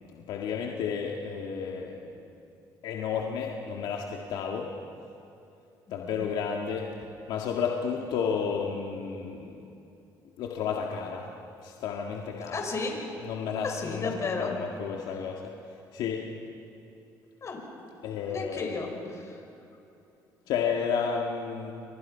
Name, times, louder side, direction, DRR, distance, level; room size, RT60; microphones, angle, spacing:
voice 1, 0.1-2.0 2.8-4.7 5.9-6.9 7.3-9.6 10.4-11.2 11.6-12.6 13.2-14.1 14.4-15.4 15.9-16.2 18.0-18.7 20.5-21.7, left 6 dB, 80° left, 0 dB, 2.0 m, -31 dB
voice 2, 5.9-6.2 12.5-13.0 13.6-14.5 17.4-17.6 18.3-19.4, left 4 dB, 40° left, 2 dB, 6.0 m, -33 dB
29.5 x 24.0 x 5.7 m, 2.7 s
cardioid pair, 85°, 8 cm